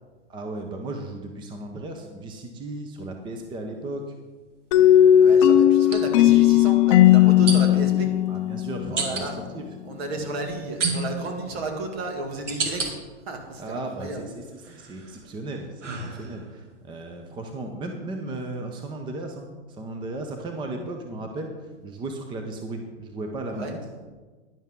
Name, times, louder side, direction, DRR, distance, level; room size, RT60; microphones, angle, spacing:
voice 1, 0.3-4.1 4.7-5.7 8.3-9.7 13.6-21.5 21.8-23.8, right 2 dB, 15° right, 4 dB, 0.7 m, -35 dB
sound 1, 3.0-3.2 5.8-6.0 7.5-7.9 9.0-9.3 10.8-11.4 12.0-12.9 13.5-14.1 14.6-16.6, right 4 dB, 80° right, 2.2 m, -30 dB
sound 2, 4.7-9.4, left 11 dB, 30° left, 0.4 m, -17 dB
voice 2, 5.2-8.1 8.9-9.3 9.8-12.9 13.3-14.2 14.7-14.9 23.5-23.7, right 2 dB, 55° right, 3 dB, 2.4 m, -33 dB
11.0 x 11.0 x 3.7 m, 1.3 s
hypercardioid pair, 130°, 35 cm